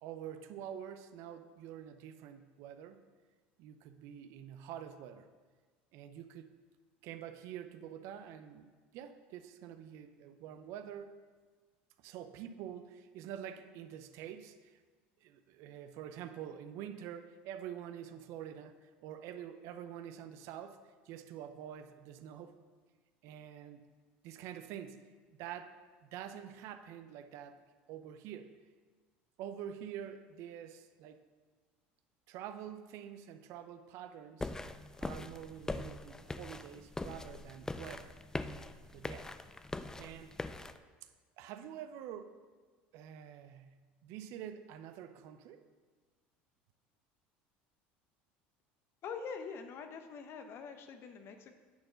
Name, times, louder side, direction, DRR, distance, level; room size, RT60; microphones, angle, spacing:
voice 1, 0.0-3.0 3.6-5.3 5.9-6.5 7.0-8.7 8.9-11.2 12.0-14.8 15.2-22.6 23.2-23.9 24.2-25.0 25.4-25.8 26.1-27.6 27.9-28.5 29.4-31.2 32.3-34.5 35.0-38.2 38.9-39.3 40.0-40.4 41.4-42.4 42.9-45.6, right 9 dB, 65° right, 10 dB, 0.6 m, -47 dB
sound 1, 34.4-40.8, left 2 dB, 10° left, 0.4 m, -42 dB
voice 2, 49.0-51.5, left 5 dB, 50° left, 7 dB, 0.9 m, -44 dB
9.5 x 4.3 x 5.7 m, 1.4 s
supercardioid pair, 90°, 5 cm